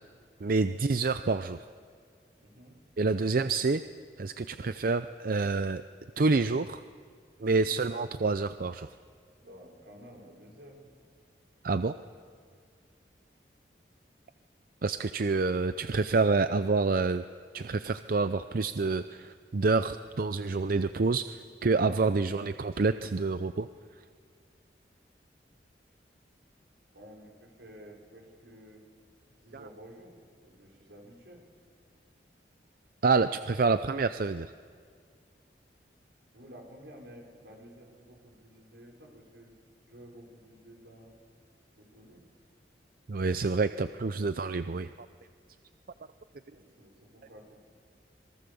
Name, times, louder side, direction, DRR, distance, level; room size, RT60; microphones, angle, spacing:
voice 1, 0.4-1.6 3.0-3.8 4.2-5.8 6.2-6.8 7.4-8.9 11.6-11.9 14.8-17.2 17.5-23.7 33.0-34.5 43.1-44.9, right 3 dB, 55° right, 11 dB, 0.5 m, -27 dB
voice 2, 2.4-2.8 7.5-7.8 9.4-10.8 26.9-28.8 29.4-31.4 36.3-39.5 39.9-41.2 41.8-42.2 46.5-47.6, equal, 80° right, 0 dB, 5.6 m, -52 dB
26.0 x 22.5 x 7.0 m, 2.1 s
head